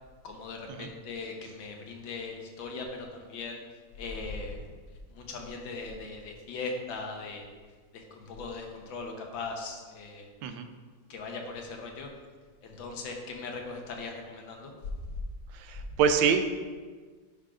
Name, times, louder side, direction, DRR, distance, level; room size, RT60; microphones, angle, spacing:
voice 1, 0.2-3.6 4.0-4.6 5.1-7.5 7.9-10.3 11.1-12.1 12.6-14.7, left 3 dB, 85° left, 2 dB, 1.7 m, -39 dB
voice 2, 15.5-16.4, right 7 dB, 80° right, 8 dB, 1.3 m, -26 dB
9.7 x 5.9 x 2.5 m, 1.5 s
omnidirectional pair, 2.1 m